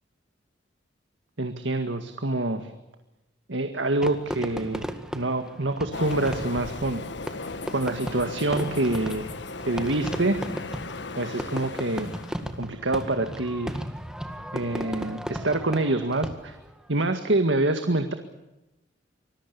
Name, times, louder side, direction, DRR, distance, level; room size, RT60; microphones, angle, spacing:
voice 1, 1.4-2.7 3.5-4.9 5.1-7.0 7.7-9.3 9.7-10.4 11.2-12.1 12.6-13.8 14.5-16.6 16.9-18.1, right 2 dB, 75° right, 7 dB, 2.0 m, -26 dB
Fireworks, 4.0-16.7, equal, 5° right, 1.9 m, -36 dB
Train, 5.9-12.6, left 3 dB, 65° left, 1.4 m, -37 dB
26.0 x 21.0 x 7.0 m, 0.97 s
head